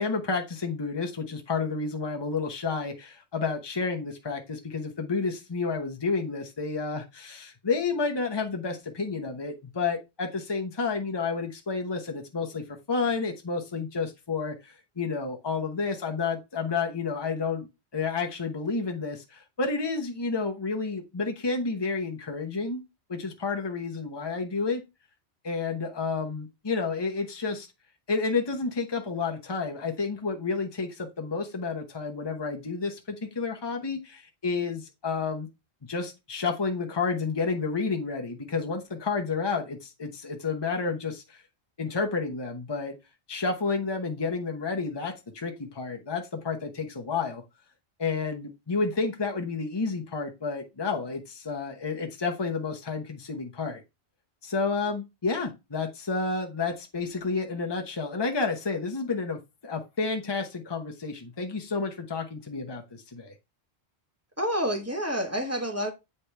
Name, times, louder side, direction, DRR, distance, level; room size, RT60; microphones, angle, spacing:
voice 1, 0.0-17.7 17.9-22.8 23.1-24.8 25.4-27.7 28.1-35.5 35.9-41.4 41.8-42.9 43.3-47.4 48.0-53.8 54.4-63.3, left 4 dB, 25° left, 1.0 m, -30 dB
voice 2, 64.4-65.9, equal, 15° right, 1.4 m, -28 dB
8.3 x 4.3 x 3.4 m
omnidirectional pair, 1.1 m